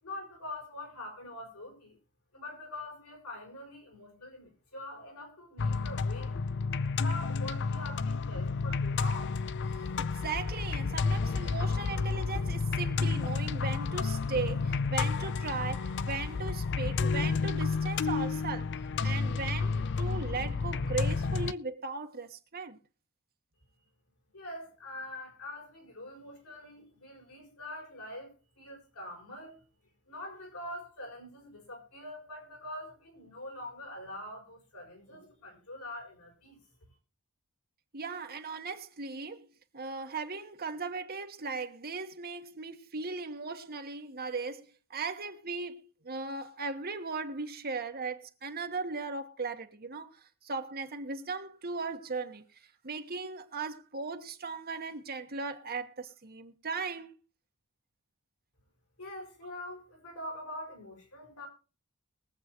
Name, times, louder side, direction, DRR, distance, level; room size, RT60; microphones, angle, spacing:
voice 1, 0.0-2.0 2.3-6.3 7.0-9.4 24.3-29.6 30.1-36.6 59.0-61.5, left 1 dB, 75° left, 6.3 m, -44 dB
sound 1, 5.6-21.5, left 4 dB, 55° left, 0.5 m, -31 dB
voice 2, 9.7-18.7 19.0-22.8 37.9-39.5 39.7-52.4 52.8-57.2, right 4 dB, 45° right, 1.3 m, -37 dB
22.5 x 8.1 x 3.0 m
head